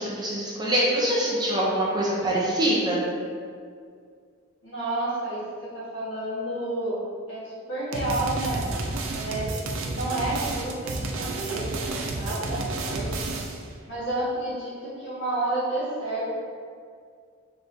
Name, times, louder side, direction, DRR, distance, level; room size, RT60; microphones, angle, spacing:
voice 1, 0.0-3.0, right 1 dB, 20° right, -5 dB, 0.6 m, -24 dB
voice 2, 4.6-7.0 7.3-8.6 9.1-13.3 13.8-16.2, right 2 dB, 60° left, -8 dB, 1.4 m, -30 dB
sound 1, 7.9-13.7, right 2 dB, 75° right, 0.5 m, -31 dB
4.0 x 3.4 x 2.7 m, 2.1 s
head